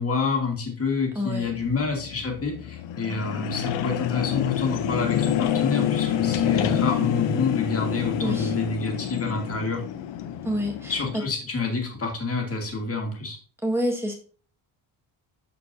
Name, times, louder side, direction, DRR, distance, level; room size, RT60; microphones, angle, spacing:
voice 1, 0.0-9.8 10.9-13.4, left 4 dB, 30° left, 1.8 m, -28 dB
voice 2, 1.1-1.5 8.2-8.5 10.4-11.2 13.6-14.1, equal, 5° right, 1.5 m, -27 dB
sound 1, 1.4-11.2, left 10 dB, 65° left, 0.8 m, -27 dB
12.5 x 4.4 x 2.6 m
cardioid pair, 165°, 47 cm